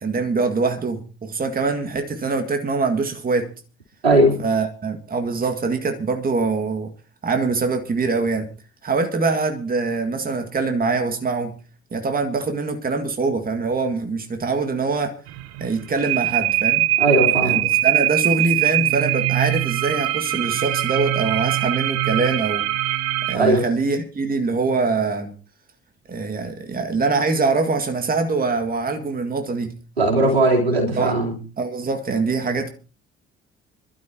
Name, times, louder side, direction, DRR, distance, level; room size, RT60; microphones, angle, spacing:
voice 1, 0.0-3.5 4.4-6.9 7.2-8.5 8.8-11.5 11.9-15.1 15.6-16.9 17.4-22.6 23.3-25.3 26.1-29.7 31.0-31.1 31.6-32.7, right 4 dB, 30° right, 6 dB, 1.9 m, -23 dB
voice 2, 4.0-4.4 17.0-17.6 23.3-23.6 30.0-31.4, right 2 dB, 85° right, -1 dB, 4.0 m, -18 dB
sound 1, 15.3-23.4, right 16 dB, 55° right, 0.9 m, -22 dB
26.5 x 12.5 x 2.9 m, 0.36 s
figure-of-eight pair, 50°, 30 cm